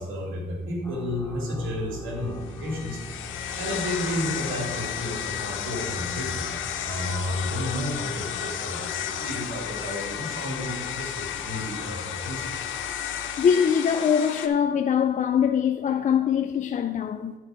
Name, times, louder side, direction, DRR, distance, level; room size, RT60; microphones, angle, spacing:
voice 1, 0.0-3.0 3.5-6.4 6.8-12.5, left 1 dB, 75° right, 2.6 m, -32 dB
sound 1, 0.8-13.5, left 1 dB, 10° left, 0.9 m, -43 dB
sound 2, 2.4-14.5, left 9 dB, 75° left, 0.8 m, -33 dB
voice 2, 13.4-17.3, left 7 dB, 40° left, 0.4 m, -23 dB
9.9 x 4.7 x 4.9 m
cardioid pair, 90°, 20 cm